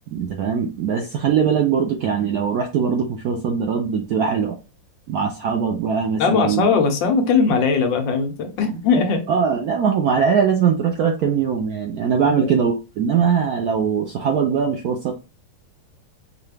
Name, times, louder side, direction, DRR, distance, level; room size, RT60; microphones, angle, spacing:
voice 1, 0.1-4.6 5.1-6.7 9.3-15.1, right 7 dB, 75° right, 3 dB, 0.8 m, -21 dB
voice 2, 6.2-9.2 12.2-12.5, left 5 dB, 75° left, 5 dB, 1.4 m, -19 dB
4.7 x 2.2 x 3.3 m, 0.30 s
omnidirectional pair, 2.1 m